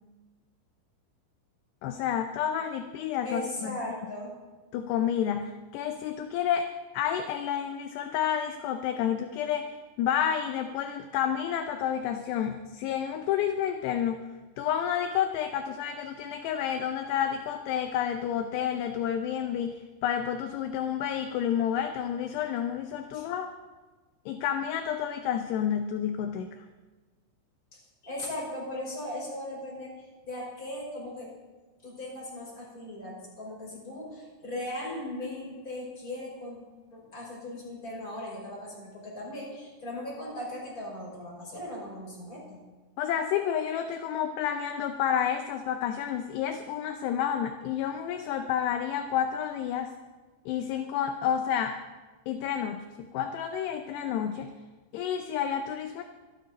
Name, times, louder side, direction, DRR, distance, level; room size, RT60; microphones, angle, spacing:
voice 1, 1.8-3.8 4.7-14.3 14.6-23.5 24.3-26.5 43.0-49.9 50.5-51.8 52.3-54.5 54.9-56.0, left 9 dB, 80° left, 6 dB, 2.6 m, -30 dB
voice 2, 3.2-4.4 23.1-23.3 27.7-31.3 31.8-36.6 36.9-42.6, left 1 dB, 20° left, -4 dB, 5.5 m, -38 dB
25.0 x 11.5 x 4.1 m, 1.3 s
omnidirectional pair, 5.3 m